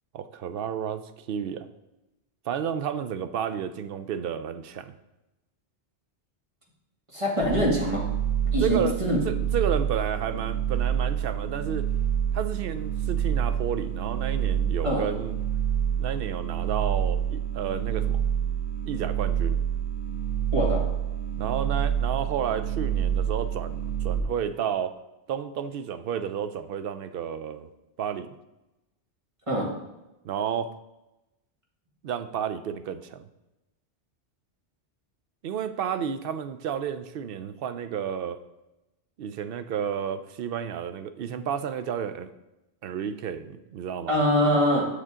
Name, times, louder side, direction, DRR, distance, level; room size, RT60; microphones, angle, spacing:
voice 1, 0.1-1.7 2.5-4.9 8.6-11.9 12.3-15.3 16.0-18.2 18.8-19.6 21.4-24.9 25.3-27.7 28.0-28.4 30.2-30.7 32.0-33.2 35.4-38.4 39.2-42.3 42.8-44.2, right 8 dB, 65° right, 11 dB, 0.7 m, -31 dB
voice 2, 7.1-8.0 8.5-9.2 14.8-15.1 20.5-20.8 29.5-29.7 44.1-44.9, equal, 30° right, -3 dB, 1.7 m, -24 dB
sound 1, 7.4-24.2, right 9 dB, 90° right, 1.2 m, -27 dB
7.9 x 6.3 x 3.6 m, 0.97 s
omnidirectional pair, 1.2 m